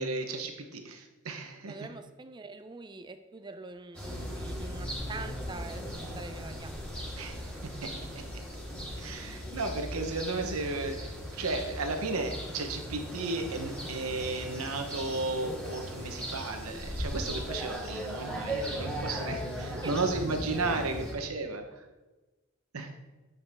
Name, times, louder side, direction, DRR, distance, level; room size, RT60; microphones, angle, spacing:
voice 1, 0.0-1.7 7.2-7.4 7.8-8.2 9.0-21.7 22.7-22.9, right 3 dB, 85° right, 5 dB, 1.0 m, -34 dB
voice 2, 1.7-6.7 19.8-20.0, right 3 dB, 20° right, 9 dB, 0.4 m, -44 dB
sound 1, 3.9-21.1, equal, 5° left, 1.8 m, -38 dB
8.8 x 5.2 x 3.5 m, 1.2 s
head